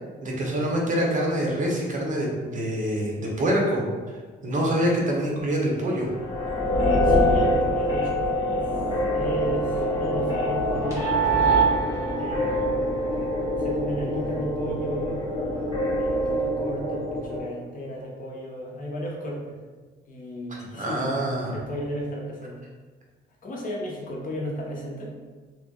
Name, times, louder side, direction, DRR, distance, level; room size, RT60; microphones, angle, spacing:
voice 1, 0.2-3.8 4.4-6.1 20.7-21.5, equal, 40° right, -2 dB, 1.0 m, -25 dB
sound 1, 6.1-17.4, equal, 15° right, 1.4 m, -24 dB
voice 2, 7.0-11.3 12.2-13.1 13.6-15.2 16.0-19.5 20.1-21.0 21.5-22.6 23.4-25.1, equal, 45° left, -3 dB, 1.0 m, -34 dB
3.0 x 2.4 x 3.7 m, 1.4 s
cardioid pair, 90°, 20 cm